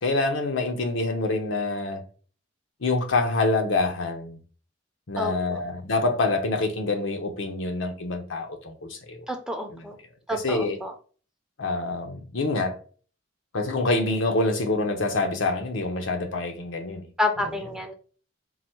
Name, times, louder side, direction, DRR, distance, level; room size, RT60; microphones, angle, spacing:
voice 1, 0.0-2.0 2.8-4.4 5.1-9.2 9.7-9.9 10.3-10.8 11.6-12.8 13.5-17.1 17.4-17.5, left 2 dB, 90° left, 0.8 m, -26 dB
voice 2, 5.2-5.6 9.3-10.0 10.3-10.9 17.2-17.9, left 1 dB, 5° right, 0.5 m, -29 dB
3.9 x 2.0 x 4.4 m
head